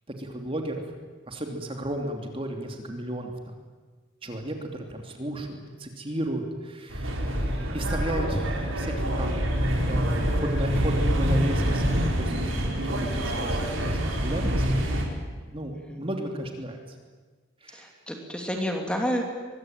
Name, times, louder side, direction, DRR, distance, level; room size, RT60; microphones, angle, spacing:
voice 1, 0.2-0.8 1.3-3.5 4.2-9.4 9.8-12.3 12.8-14.6 15.1-16.8 17.6-17.9, right 1 dB, 25° right, 3 dB, 2.9 m, -34 dB
sound 1, 6.9-15.0, equal, 75° right, 5.0 m, -26 dB
voice 2, 15.7-16.0 17.7-19.2, equal, 5° left, 2 dB, 2.9 m, -30 dB
24.5 x 22.5 x 9.2 m, 1.4 s
head